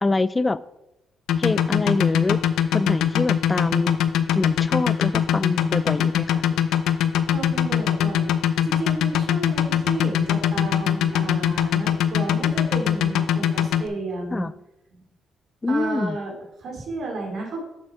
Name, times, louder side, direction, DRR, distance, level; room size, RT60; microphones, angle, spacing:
voice 1, 0.0-0.6 1.4-2.4 2.7-4.0 4.3-6.4 14.3-14.5 15.6-16.2, left 2 dB, 20° left, 0.3 m, -25 dB
sound 1, 1.3-13.9, left 9 dB, 85° left, 0.5 m, -21 dB
voice 2, 7.3-14.5 15.7-17.6, right 2 dB, 65° right, 2.6 m, -32 dB
6.8 x 6.6 x 4.8 m
cardioid pair, 90°, 0 cm